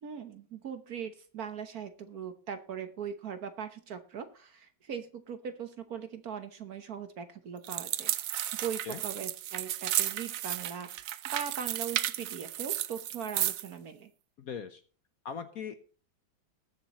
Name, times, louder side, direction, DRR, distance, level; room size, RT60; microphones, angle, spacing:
voice 1, 0.0-8.4 8.6-10.9 11.3-14.1, right 7 dB, 55° right, 9 dB, 1.3 m, -40 dB
sound 1, 7.6-13.7, right 12 dB, 85° right, 0.7 m, -33 dB
voice 2, 14.4-14.8 15.2-15.8, left 7 dB, 60° left, 10 dB, 1.1 m, -39 dB
20.0 x 7.3 x 3.0 m, 0.40 s
omnidirectional pair, 2.2 m